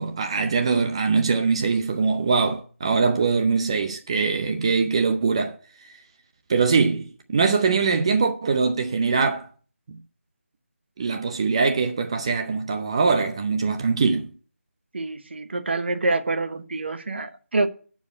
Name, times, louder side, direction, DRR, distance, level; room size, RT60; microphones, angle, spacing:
voice 1, 0.0-5.6 6.5-9.5 11.0-14.3, right 4 dB, 25° right, 0.6 m, -22 dB
voice 2, 14.9-17.7, right 3 dB, 50° right, 1.2 m, -26 dB
11.0 x 4.7 x 8.2 m
figure-of-eight pair, 165°, 8 cm